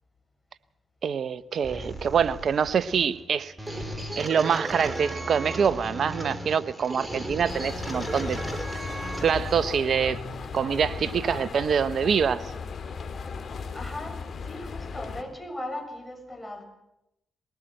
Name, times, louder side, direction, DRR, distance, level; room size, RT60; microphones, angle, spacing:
voice 1, 1.0-3.5 4.2-8.4 9.2-10.2 10.5-12.4, right 7 dB, 65° right, 1.0 m, -25 dB
sound 1, 1.6-9.6, right 1 dB, 20° right, 5.1 m, -36 dB
sound 2, 7.5-15.2, left 5 dB, 60° left, 2.6 m, -36 dB
voice 2, 13.3-16.6, left 1 dB, 10° left, 7.2 m, -38 dB
21.5 x 18.5 x 7.9 m
supercardioid pair, 55°, 0 cm